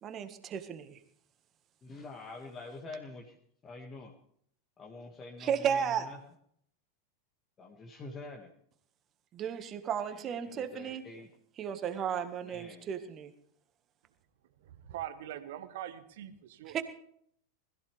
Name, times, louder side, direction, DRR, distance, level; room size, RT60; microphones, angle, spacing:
voice 1, 0.0-1.0 5.4-6.1 9.3-11.0 11.6-13.3 16.7-16.8, right 8 dB, 30° right, 9 dB, 1.7 m, -34 dB
voice 2, 1.8-3.4 3.6-4.1 4.8-6.2 7.6-8.5 10.1-11.3 12.4-12.9, left 3 dB, 25° left, 0 dB, 2.0 m, -46 dB
voice 3, 14.6-16.8, right 11 dB, 55° right, 11 dB, 1.5 m, -42 dB
21.0 x 14.5 x 3.5 m, 0.67 s
figure-of-eight pair, 90°, 0 cm